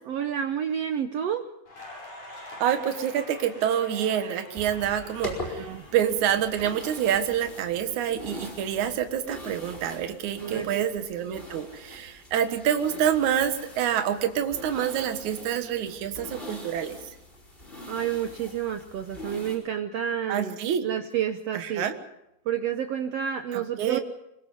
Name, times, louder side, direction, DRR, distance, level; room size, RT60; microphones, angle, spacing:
voice 1, 0.1-1.4 5.5-5.8 10.4-10.8 17.9-21.9 22.5-24.0, right 9 dB, 80° right, 7 dB, 1.4 m, -30 dB
Crackle, 1.7-7.5 7.8-9.6, left 1 dB, 55° left, 8.5 m, -46 dB
voice 2, 2.6-5.7 5.9-17.0 20.3-20.8 21.5-22.0 23.8-24.0, right 9 dB, 60° right, 8 dB, 2.6 m, -27 dB
sound 1, 4.5-19.6, left 1 dB, 15° left, 4.9 m, -42 dB
25.5 x 22.0 x 5.5 m, 0.84 s
omnidirectional pair, 4.1 m